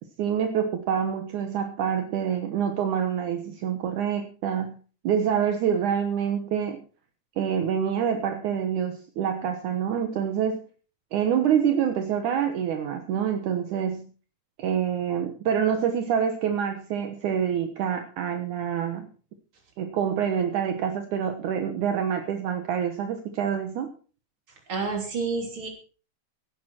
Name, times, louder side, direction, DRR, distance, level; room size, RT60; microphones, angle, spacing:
voice 1, 0.2-4.8 5.0-6.8 7.4-10.6 11.1-14.1 14.6-19.1 19.8-23.9, right 8 dB, 70° right, 6 dB, 2.6 m, -26 dB
voice 2, 24.7-25.7, right 4 dB, 40° right, 2 dB, 4.0 m, -29 dB
17.0 x 11.0 x 4.4 m, 0.39 s
omnidirectional pair, 3.7 m